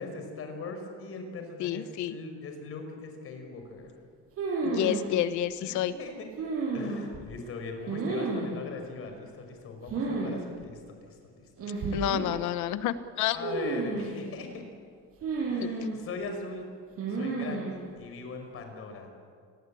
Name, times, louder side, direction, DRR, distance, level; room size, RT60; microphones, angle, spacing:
voice 1, 0.0-3.9 5.6-6.3 6.7-12.0 13.3-14.7 15.5-16.6 17.1-19.1, left 3 dB, 45° left, 5 dB, 5.4 m, -40 dB
voice 2, 1.6-2.1 4.6-5.9 11.9-13.4 15.6-15.7, left 11 dB, 75° left, 13 dB, 1.3 m, -29 dB
sound 1, 4.4-5.1 6.4-7.2 7.9-8.6 9.9-10.3 10.6-10.7 11.6-12.3 13.4-14.2 15.2-16.0 17.0-17.7, right 3 dB, 50° right, 7.8 m, -31 dB
28.5 x 21.0 x 8.7 m, 2.1 s
cardioid pair, 150°, 30 cm